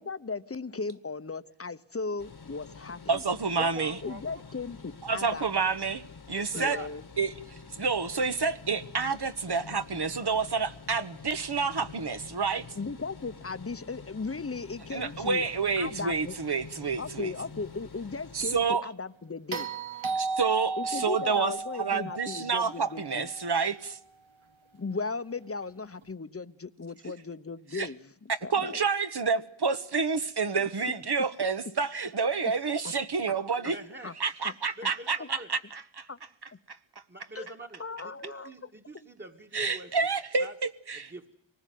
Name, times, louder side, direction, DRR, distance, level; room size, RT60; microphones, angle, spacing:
voice 1, 0.0-3.2 4.0-5.4 6.5-7.0 12.8-15.4 15.8-16.4 16.8-19.7 20.0-20.1 20.8-23.3 24.7-28.8 30.5-30.7 32.8-32.9 33.6-33.7 34.0-34.1 34.4-34.5 34.8-34.9 35.2-35.3 36.1-36.2 37.3-37.5 37.8-38.7, left 4 dB, 30° left, 1.0 m, -37 dB
sound 1, 2.2-18.7, left 5 dB, 50° left, 1.5 m, -48 dB
voice 2, 3.1-4.0 5.0-6.8 7.2-12.7 14.9-17.3 18.3-18.9 20.1-24.0 27.7-27.9 28.3-33.8 34.2-36.1 36.7-36.8 39.5-41.1, right 5 dB, 55° right, 1.3 m, -29 dB
voice 3, 3.6-4.2 6.3-6.9 33.7-34.1 34.8-35.5 37.1-39.9 40.4-40.5 41.1-41.3, right 1 dB, 20° right, 1.9 m, -43 dB
sound 2, 19.5-23.8 26.0-26.1, right 4 dB, 75° right, 1.6 m, -35 dB
25.0 x 19.5 x 9.3 m
wide cardioid pair, 95°, 48 cm